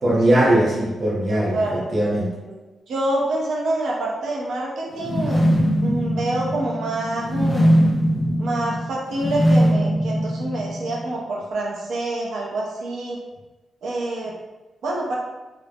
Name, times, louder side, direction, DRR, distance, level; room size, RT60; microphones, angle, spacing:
voice 1, 0.0-2.3, right 1 dB, 40° right, -4 dB, 0.5 m, -20 dB
voice 2, 1.3-1.8 2.4-2.6 2.9-5.4 5.8-7.7 8.4-13.2 13.8-14.3 14.8-15.2, right 2 dB, 90° right, -3 dB, 0.6 m, -26 dB
sound 1, 5.0-11.0, equal, 25° left, 0.4 m, -21 dB
2.4 x 2.0 x 3.3 m, 1.1 s
wide cardioid pair, 165°, 0 cm